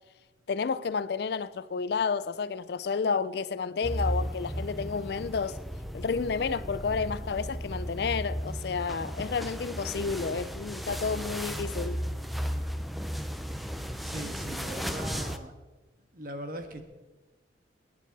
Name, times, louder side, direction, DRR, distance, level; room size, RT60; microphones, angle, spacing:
voice 1, 0.5-5.6 5.9-12.0, left 5 dB, 55° left, 0.4 m, -31 dB
sound 1, 3.8-15.4, equal, ahead, 0.6 m, -35 dB
voice 2, 14.0-15.5 16.1-16.8, right 1 dB, 45° right, 1.5 m, -39 dB
22.5 x 9.4 x 4.1 m
head